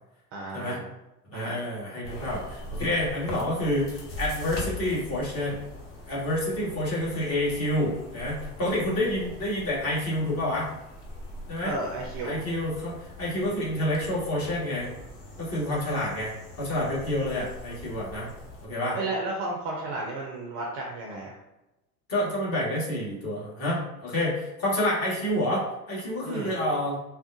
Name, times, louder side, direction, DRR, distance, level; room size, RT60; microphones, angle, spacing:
voice 1, 0.3-0.9 1.3-1.5 11.6-12.4 18.9-21.4 26.2-26.5, right 2 dB, 30° right, -1 dB, 0.4 m, -33 dB
voice 2, 1.3-5.6 6.1-10.7 11.5-11.7 12.2-14.9 15.4-16.3 16.6-18.3 18.6-19.0 22.1-27.0, left 1 dB, 30° left, -5 dB, 1.4 m, -28 dB
sound 1, 2.0-18.7, left 1 dB, 45° left, 1.0 m, -42 dB
3.5 x 2.1 x 2.7 m, 0.96 s
figure-of-eight pair, 90°, 48 cm